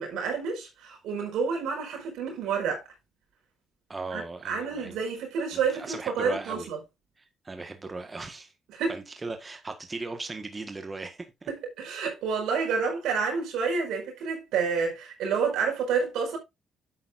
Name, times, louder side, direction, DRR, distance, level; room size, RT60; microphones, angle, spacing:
voice 1, 0.0-2.8 4.1-6.8 8.7-8.9 11.5-16.4, right 5 dB, 85° right, 5.1 m, -29 dB
voice 2, 3.9-5.0 5.5-6.7 7.4-8.5 8.9-11.5, right 3 dB, 25° right, 1.6 m, -38 dB
10.5 x 8.5 x 2.6 m
cardioid pair, 90°, 0 cm